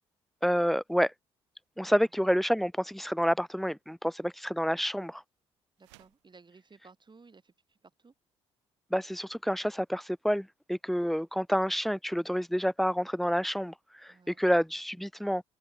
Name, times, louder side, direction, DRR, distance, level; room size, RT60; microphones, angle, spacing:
voice 1, 0.4-1.1 1.8-5.2 8.9-15.4, equal, ahead, 0.4 m, -28 dB
voice 2, 5.8-8.1 14.1-14.4, right 4 dB, 30° right, 5.5 m, -57 dB
sound 1, 5.8-6.3, right 23 dB, 75° right, 3.6 m, -59 dB
open air
figure-of-eight pair, 45°, 15 cm